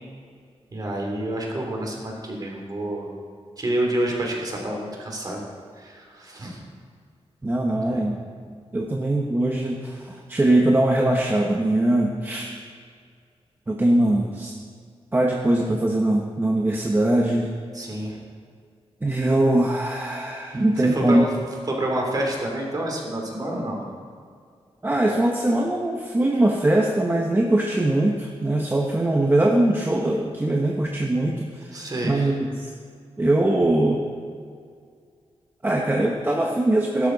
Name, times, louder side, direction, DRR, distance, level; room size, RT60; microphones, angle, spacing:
voice 1, 0.7-3.1 3.6-5.4 5.8-6.6 7.8-8.0 17.7-18.2 20.5-21.3 21.7-23.8 31.7-32.3, right 1 dB, 35° right, 0 dB, 2.8 m, -28 dB
voice 2, 7.4-8.2 8.7-12.5 13.7-14.5 15.1-17.5 19.0-21.2 24.8-32.7 33.2-34.0 35.6-37.1, right 1 dB, 20° right, 0 dB, 0.9 m, -21 dB
16.5 x 12.5 x 4.0 m, 2.2 s
wide cardioid pair, 150°, 11 cm